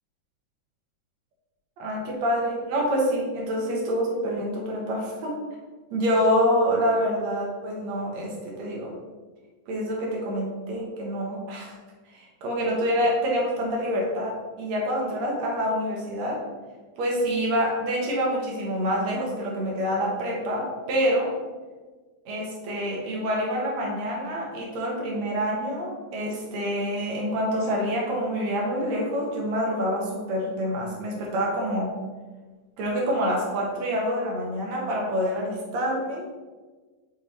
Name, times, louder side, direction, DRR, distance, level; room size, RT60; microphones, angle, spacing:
voice 1, 1.8-5.4 5.9-8.9 9.7-11.8 12.1-16.4 17.0-21.3 22.3-31.9 32.8-36.2, equal, 65° right, -2 dB, 2.3 m, -26 dB
6.7 x 3.6 x 4.1 m, 1.3 s
omnidirectional pair, 3.7 m